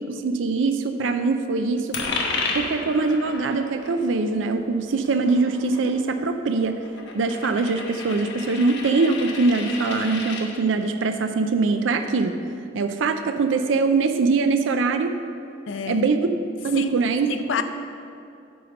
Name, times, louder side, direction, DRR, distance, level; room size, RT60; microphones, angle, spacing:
voice 1, 0.1-1.9 2.5-6.8 7.1-12.3 12.7-15.1 15.8-16.3 16.6-17.3, right 4 dB, 80° right, 7 dB, 0.4 m, -22 dB
Coin (dropping), 1.9-10.5, left 3 dB, 65° left, 1.1 m, -33 dB
voice 2, 15.7-16.1 16.7-17.0 17.3-17.6, left 6 dB, 85° left, 9 dB, 0.5 m, -28 dB
9.0 x 4.3 x 6.4 m, 2.5 s
head